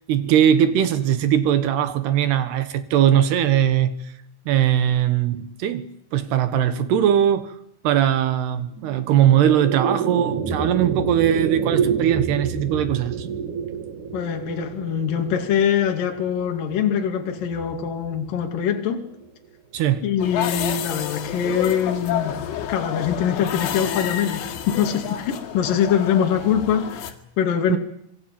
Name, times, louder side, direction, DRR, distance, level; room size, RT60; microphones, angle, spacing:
voice 1, 0.1-3.9 4.5-5.9 6.1-7.5 7.8-13.3 19.7-20.0 27.7-27.8, right 10 dB, 70° right, 3.1 m, -20 dB
sound 1, 8.7-19.3, right 6 dB, 50° right, 2.9 m, -29 dB
voice 2, 14.1-19.1 20.0-22.4 22.7-27.8, left 8 dB, 50° left, 3.6 m, -23 dB
sound 2, 20.2-27.1, left 10 dB, 85° left, 4.6 m, -29 dB
25.5 x 23.0 x 8.9 m
omnidirectional pair, 5.5 m